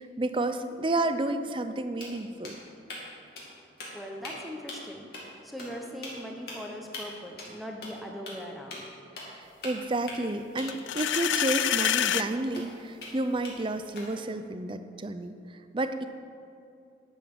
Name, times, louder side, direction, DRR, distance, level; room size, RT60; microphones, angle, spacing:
voice 1, 0.0-2.6 9.2-16.1, right 2 dB, 25° right, 10 dB, 0.5 m, -31 dB
sound 1, 1.6-1.7 2.0-3.1 3.4-3.5 3.8-4.3 4.7-4.9 5.1-5.2 5.6-5.7 6.0-6.1 6.5-6.6 6.9-7.0 7.4-7.5 7.8-7.9 8.3-8.4 8.7-8.8 9.2-9.4 9.6-10.8 11.1-11.2 11.6-11.7 12.1-12.2 12.5-13.1 13.4-14.3, left 3 dB, 60° left, 2.6 m, -41 dB
voice 2, 3.9-5.1 5.4-8.8, equal, ahead, 1 dB, 0.9 m, -40 dB
sound 2, 10.7-12.3, left 11 dB, 85° left, 0.4 m, -26 dB
11.0 x 7.1 x 6.2 m, 2.6 s
head